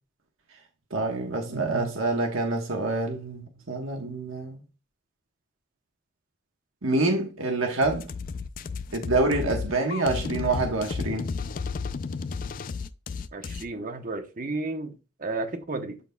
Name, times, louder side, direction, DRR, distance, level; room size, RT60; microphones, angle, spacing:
voice 1, 0.9-4.6 6.8-8.1 8.9-11.3, right 2 dB, 85° right, 1.3 m, -26 dB
sound 1, 7.8-13.7, left 4 dB, 45° left, 0.4 m, -33 dB
voice 2, 13.3-16.0, right 2 dB, 45° right, 0.9 m, -33 dB
12.0 x 4.1 x 2.3 m
head